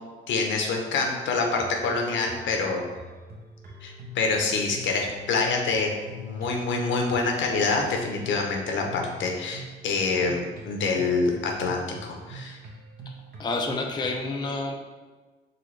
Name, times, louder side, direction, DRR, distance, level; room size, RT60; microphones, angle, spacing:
voice 1, 0.3-2.9 3.8-12.6, left 4 dB, 70° left, 1 dB, 0.9 m, -26 dB
sound 1, 1.5-14.2, left 1 dB, 50° right, 1.1 m, -44 dB
voice 2, 13.4-14.8, left 3 dB, 20° left, 1 dB, 0.5 m, -29 dB
4.0 x 4.0 x 3.2 m, 1.3 s
cardioid pair, 90°, 20 cm